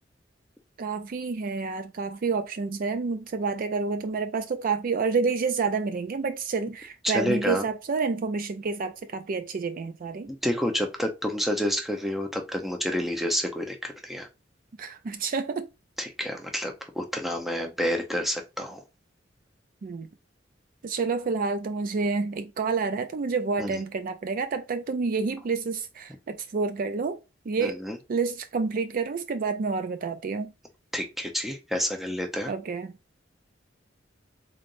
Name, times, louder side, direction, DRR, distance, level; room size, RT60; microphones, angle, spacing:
voice 1, 0.8-10.3 14.8-15.7 19.8-20.1 20.8-27.2 27.5-27.8 28.1-30.5 32.5-32.9, right 4 dB, 50° right, 0.4 m, -29 dB
voice 2, 7.0-7.7 10.3-14.3 16.0-18.8 23.6-23.8 27.6-28.0 30.9-32.5, equal, ahead, 0.7 m, -29 dB
3.8 x 3.4 x 2.5 m
head